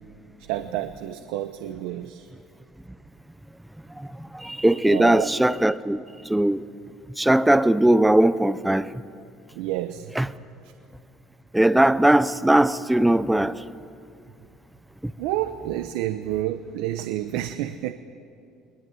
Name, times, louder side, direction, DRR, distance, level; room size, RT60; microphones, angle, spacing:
voice 1, 0.5-2.3 4.8-5.3 9.5-10.1 15.2-17.9, right 13 dB, 90° right, 0.9 m, -29 dB
voice 2, 4.4-6.0 6.3-6.6 7.2-8.8 10.2-10.3 11.5-13.5, right 1 dB, 5° right, 0.5 m, -19 dB
23.0 x 20.0 x 9.6 m
cardioid pair, 160°, 0 cm